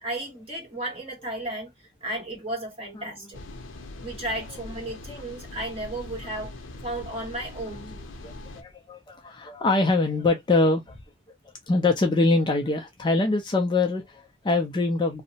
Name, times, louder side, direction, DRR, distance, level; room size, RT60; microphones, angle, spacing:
voice 1, 0.0-1.7 2.0-3.4 4.0-6.5 6.8-7.9, right 1 dB, 30° right, 1.4 m, -34 dB
sound 1, 3.3-8.6, left 2 dB, 90° left, 0.6 m, -41 dB
voice 2, 8.2-11.0 11.7-15.2, left 2 dB, 25° left, 0.4 m, -24 dB
2.7 x 2.0 x 2.7 m
head